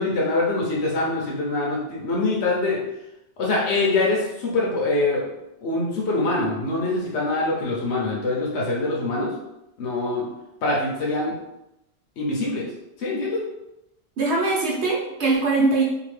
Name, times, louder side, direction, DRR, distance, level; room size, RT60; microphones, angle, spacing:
voice 1, 0.0-2.8 3.4-5.2 5.6-9.3 9.8-10.3 10.6-11.4 12.2-12.6 13.0-13.4, left 2 dB, 80° left, -4 dB, 1.0 m, -24 dB
voice 2, 14.2-15.8, right 3 dB, 80° right, -4 dB, 1.0 m, -21 dB
2.8 x 2.3 x 3.1 m, 0.88 s
omnidirectional pair, 1.1 m